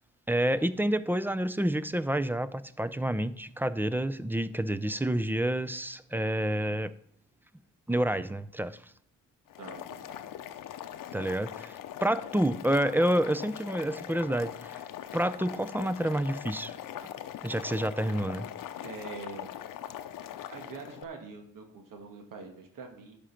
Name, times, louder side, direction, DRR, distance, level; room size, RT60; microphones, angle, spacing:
voice 1, 0.3-6.9 7.9-8.8 11.1-14.8 15.1-16.7 17.4-18.5, right 1 dB, 5° right, 14 dB, 0.4 m, -29 dB
Boiling, 9.5-21.0, left 11 dB, 80° left, 0.7 m, -41 dB
voice 2, 9.6-10.2 18.8-19.5 20.5-23.2, right 4 dB, 80° right, 4 dB, 1.5 m, -44 dB
11.0 x 5.1 x 5.8 m, 0.68 s
cardioid pair, 85°, 32 cm